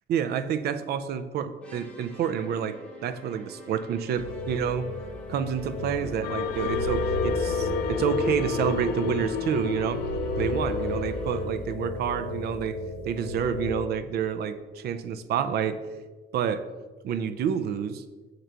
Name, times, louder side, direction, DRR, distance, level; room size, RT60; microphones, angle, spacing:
voice 1, 0.1-4.9 5.3-10.0 10.4-12.8 13.0-15.8 16.3-16.6 17.0-18.0, right 8 dB, 55° right, 10 dB, 0.4 m, -29 dB
sound 1, 1.6-11.7, right 1 dB, 5° left, 0.7 m, -49 dB
sound 2, 4.2-13.7, left 2 dB, 80° left, 1.1 m, -32 dB
sound 3, 6.2-11.6, left 7 dB, 55° left, 0.4 m, -32 dB
6.7 x 3.8 x 4.4 m, 1.3 s
cardioid pair, 170°, 20 cm